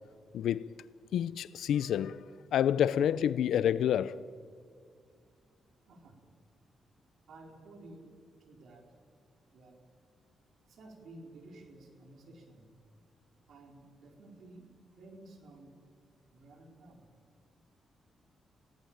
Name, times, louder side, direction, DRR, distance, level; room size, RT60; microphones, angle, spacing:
voice 1, 0.3-0.7 1.1-4.3, left 9 dB, 85° left, 0.6 m, -29 dB
voice 2, 5.9-6.2 7.3-8.1 8.4-8.9 9.5-9.8 10.7-12.7 13.5-14.7 15.0-15.8 16.3-17.1, right 2 dB, 70° right, 4.2 m, -53 dB
28.5 x 17.5 x 8.9 m
cardioid pair, 85°, 0 cm